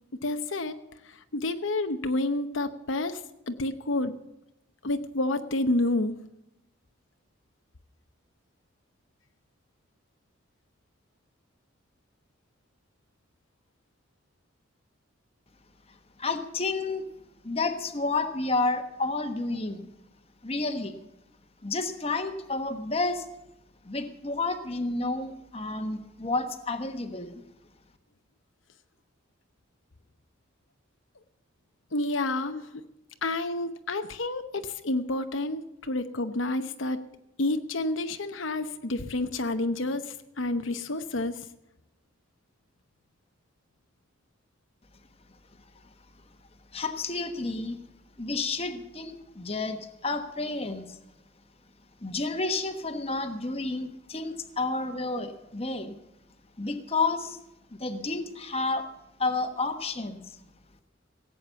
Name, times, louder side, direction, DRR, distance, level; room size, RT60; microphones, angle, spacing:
voice 1, 0.2-0.8 1.0-3.2 3.5-4.1 4.8-6.1 31.9-32.7 33.2-37.0 37.4-41.4, left 2 dB, 75° left, 8 dB, 0.9 m, -29 dB
voice 2, 16.2-17.1 17.4-19.9 20.4-21.0 21.6-23.3 23.8-27.4 46.7-47.8 48.2-51.0 52.0-55.9 56.6-57.4 57.8-58.9 59.2-60.4, left 3 dB, 30° left, 7 dB, 1.3 m, -30 dB
17.0 x 8.7 x 6.9 m, 0.87 s
head